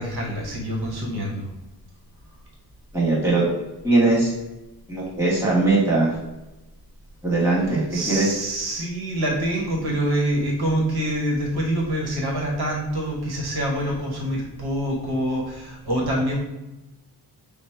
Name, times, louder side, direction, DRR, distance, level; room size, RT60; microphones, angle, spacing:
voice 1, 0.0-1.5 7.9-16.4, right 1 dB, 65° right, -1 dB, 1.1 m, -26 dB
voice 2, 2.9-3.4 3.8-4.3 4.9-6.1 7.2-8.4, right 2 dB, 5° right, -6 dB, 1.5 m, -20 dB
5.1 x 2.0 x 4.4 m, 1.0 s
wide cardioid pair, 145°, 41 cm